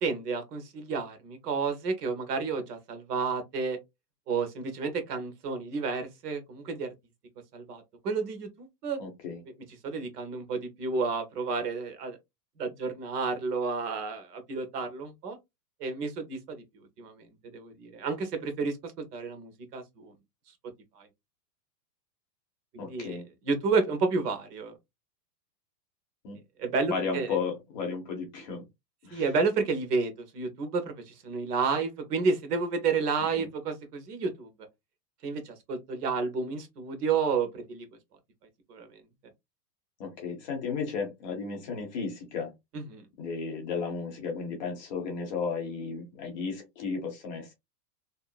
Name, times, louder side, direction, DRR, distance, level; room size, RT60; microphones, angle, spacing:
voice 1, 0.0-3.8 4.3-6.9 7.5-9.0 9.8-12.2 12.6-15.4 15.8-17.3 17.5-20.1 21.0-21.1 22.7-24.7 26.6-27.3 29.1-34.5 35.2-37.9 38.7-39.0 42.7-43.1, right 4 dB, 70° right, 1.0 m, -31 dB
voice 2, 9.0-9.4 22.8-23.2 26.2-26.4 26.9-28.6 29.0-29.2 33.4-33.5 40.0-42.5 43.2-47.5, left 5 dB, 25° left, 0.7 m, -34 dB
2.8 x 2.4 x 2.2 m
supercardioid pair, 170°, 50 cm